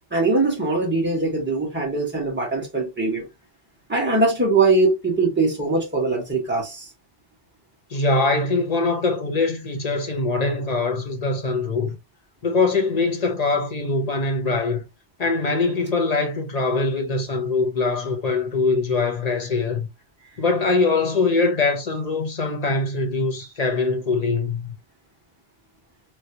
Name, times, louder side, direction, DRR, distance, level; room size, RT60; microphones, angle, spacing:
voice 1, 0.1-3.3 3.9-6.8, right 3 dB, 10° right, 1.3 m, -21 dB
voice 2, 7.9-12.0 12.4-14.8 15.2-19.9 20.4-24.7, left 3 dB, 40° left, 0.9 m, -22 dB
3.1 x 3.1 x 2.8 m
omnidirectional pair, 1.0 m